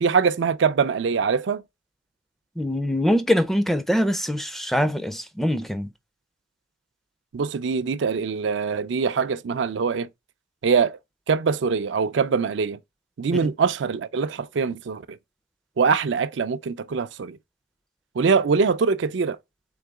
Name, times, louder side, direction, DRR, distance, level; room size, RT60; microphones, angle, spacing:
voice 1, 0.0-1.6 7.3-10.1 10.6-11.0 11.3-12.8 13.2-15.2 15.8-17.4 18.2-19.4, right 5 dB, 70° right, 0.4 m, -23 dB
voice 2, 2.6-5.9 13.3-13.5, equal, ahead, 0.4 m, -23 dB
3.9 x 3.7 x 3.4 m
head